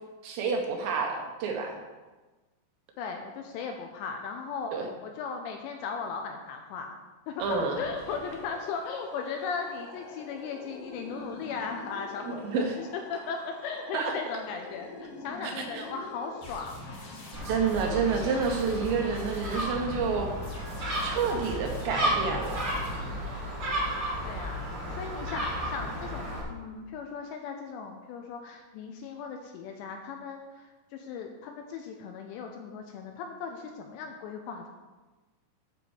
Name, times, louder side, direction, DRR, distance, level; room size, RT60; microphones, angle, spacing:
voice 1, 0.2-1.8 4.7-4.9 7.4-7.8 12.3-12.7 13.9-14.1 15.4-15.9 17.4-20.3 21.0-22.7, right 5 dB, 75° right, 2 dB, 2.9 m, -29 dB
voice 2, 3.0-7.0 7.3-16.7 24.2-24.6 24.9-34.7, left 5 dB, 80° left, 3 dB, 2.7 m, -37 dB
sound 1, 7.4-23.1, left 2 dB, 55° left, 3.8 m, -44 dB
Gull seagull, 17.3-26.4, equal, 45° right, 2.0 m, -33 dB
9.4 x 4.4 x 7.0 m, 1.2 s
omnidirectional pair, 5.6 m